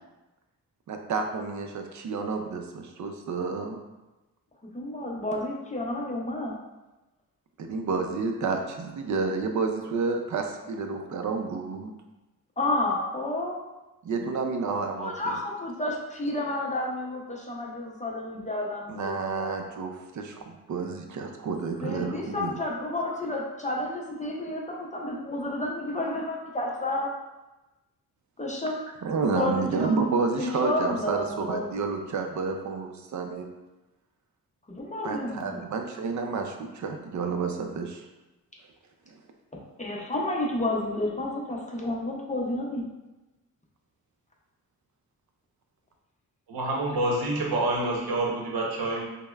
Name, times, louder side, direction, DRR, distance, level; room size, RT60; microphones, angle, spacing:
voice 1, 0.9-3.8 7.6-11.9 14.0-15.4 18.9-22.6 29.0-33.4 35.0-38.1, right 4 dB, 55° right, 4 dB, 0.5 m, -30 dB
voice 2, 4.7-6.6 12.6-13.6 15.0-19.6 21.8-27.1 28.4-28.8 29.3-29.9 30.4-31.9 34.7-35.6 39.8-42.9, left 1 dB, 20° left, -2 dB, 0.6 m, -31 dB
voice 3, 46.5-49.0, right 2 dB, 90° right, -2 dB, 0.8 m, -27 dB
5.2 x 2.1 x 2.3 m, 1.1 s
cardioid pair, 95°, 35 cm